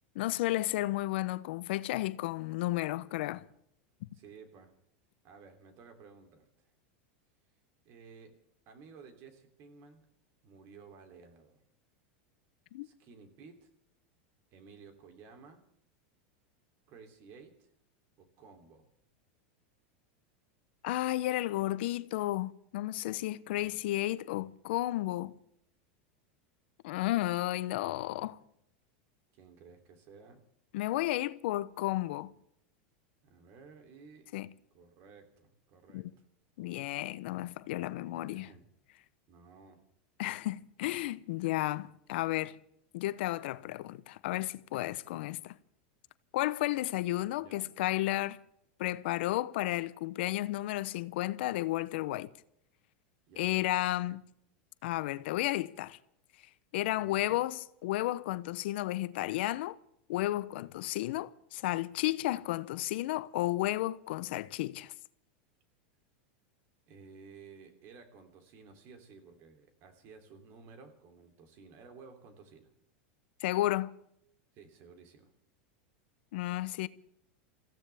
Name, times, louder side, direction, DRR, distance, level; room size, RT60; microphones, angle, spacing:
voice 1, 0.1-3.4 12.7-12.9 20.8-25.3 26.8-28.4 30.7-32.3 34.3-34.5 35.9-36.1 36.6-38.5 40.2-42.6 42.9-45.5 46.3-48.4 48.8-52.3 53.4-54.2 54.8-56.0 56.7-59.8 60.1-64.9 73.4-73.9 76.3-76.9, left 16 dB, 70° left, 0.7 m, -33 dB
voice 2, 4.1-4.7 5.2-6.7 7.8-8.4 8.7-10.0 10.4-11.6 12.8-13.7 14.5-15.6 16.9-17.7 18.2-18.9 23.5-23.9 29.3-30.4 33.2-34.3 34.7-36.1 38.1-38.7 39.3-39.8 47.4-47.7 53.3-53.8 57.0-57.4 66.9-72.7 74.5-75.3, right 5 dB, 45° right, 3.0 m, -55 dB
26.0 x 15.5 x 3.4 m
supercardioid pair, 130°, 6 cm